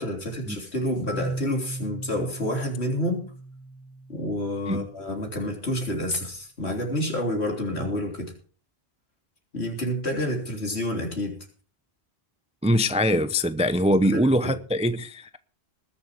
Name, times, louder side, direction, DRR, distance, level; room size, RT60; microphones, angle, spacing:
voice 1, 0.0-3.3 4.1-8.3 9.5-11.4 14.1-14.6, left 1 dB, 75° left, 3.7 m, -29 dB
Marimba xylophone, 1.1-5.0, right 2 dB, 15° left, 0.9 m, -37 dB
voice 2, 12.6-15.4, equal, 10° right, 0.4 m, -23 dB
20.0 x 7.1 x 4.8 m
omnidirectional pair, 1.1 m